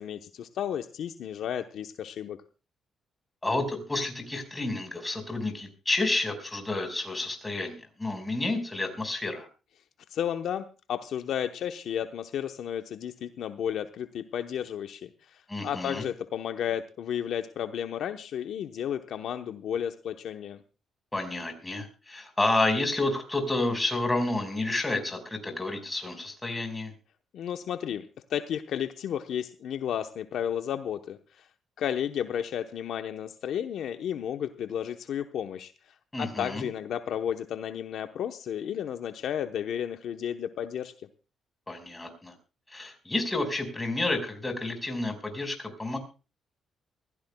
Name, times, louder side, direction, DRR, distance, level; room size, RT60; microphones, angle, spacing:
voice 1, 0.0-2.4 10.1-20.6 27.3-31.4 31.8-35.7 36.2-41.1, left 9 dB, 70° left, 8 dB, 0.9 m, -33 dB
voice 2, 3.4-9.5 15.5-16.0 21.1-26.9 36.1-36.6 41.7-42.3 42.7-46.0, left 2 dB, 15° left, 6 dB, 4.9 m, -30 dB
23.5 x 16.0 x 2.3 m, 0.34 s
cardioid pair, 90°, 0 cm